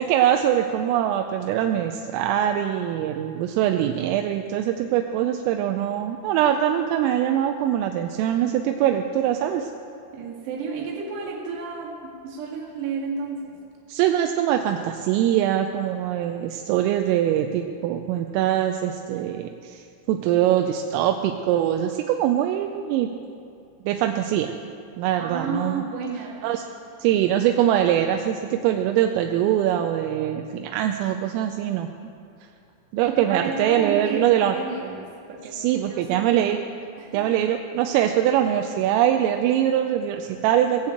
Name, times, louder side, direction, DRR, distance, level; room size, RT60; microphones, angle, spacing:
voice 1, 0.0-9.7 13.9-23.1 23.9-24.5 25.0-25.8 26.4-26.6 27.0-31.9 32.9-34.6 35.5-36.6 37.1-40.9, right 11 dB, 85° right, 5 dB, 3.2 m, -23 dB
voice 2, 10.1-13.6 25.2-26.5 33.0-36.3 37.0-37.3, right 4 dB, 60° right, -3 dB, 3.8 m, -32 dB
18.5 x 7.2 x 7.7 m, 2.4 s
omnidirectional pair, 6.0 m